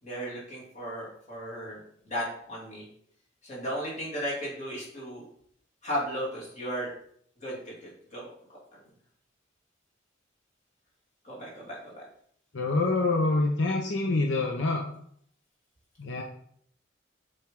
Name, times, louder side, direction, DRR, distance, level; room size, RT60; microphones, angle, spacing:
voice 1, 0.0-2.9 3.4-5.2 5.8-6.9 7.4-8.3 8.7-8.8 11.2-12.0, equal, 35° left, -5 dB, 2.8 m, -35 dB
voice 2, 12.5-14.8 16.0-16.2, left 3 dB, 75° left, 1 dB, 0.8 m, -26 dB
7.4 x 4.7 x 3.8 m, 0.65 s
head